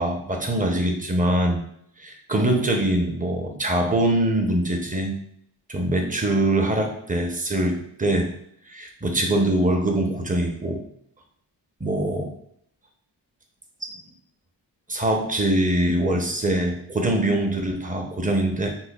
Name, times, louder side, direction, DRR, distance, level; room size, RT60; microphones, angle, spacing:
voice 1, 0.0-1.6 2.0-5.2 5.7-8.3 8.7-10.8 11.8-12.3 13.8-13.9 14.9-18.7, right 1 dB, 20° right, 3 dB, 0.7 m, -23 dB
5.6 x 2.2 x 2.3 m, 0.69 s
cardioid pair, 65°, 44 cm